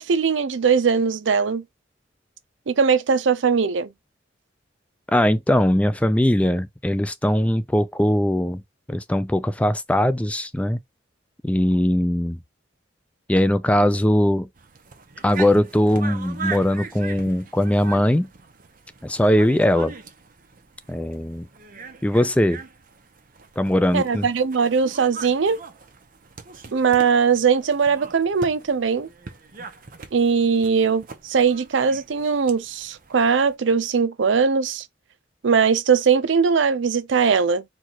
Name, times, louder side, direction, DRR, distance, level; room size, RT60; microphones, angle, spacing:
voice 1, 0.0-1.6 2.7-3.9 23.9-25.6 26.7-29.1 30.1-34.8 35.4-37.6, right 6 dB, 80° right, 0.5 m, -20 dB
voice 2, 5.1-8.6 8.9-10.8 11.4-12.4 13.3-14.5 15.2-18.3 19.0-19.9 20.9-21.5 22.0-22.6 23.6-24.3, left 1 dB, 5° left, 0.3 m, -20 dB
sound 1, 14.5-33.5, right 5 dB, 45° right, 0.9 m, -41 dB
4.6 x 2.4 x 4.2 m
head